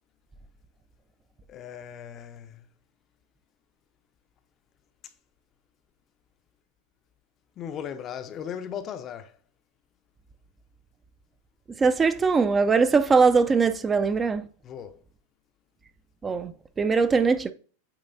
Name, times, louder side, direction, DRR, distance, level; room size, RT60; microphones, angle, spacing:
voice 1, 1.5-2.7 5.0-5.1 7.6-9.4 14.6-15.0, left 8 dB, 30° left, 0.6 m, -37 dB
voice 2, 11.8-14.5 16.2-17.5, right 4 dB, 15° right, 0.5 m, -21 dB
8.8 x 3.2 x 4.0 m
supercardioid pair, 135°, 0 cm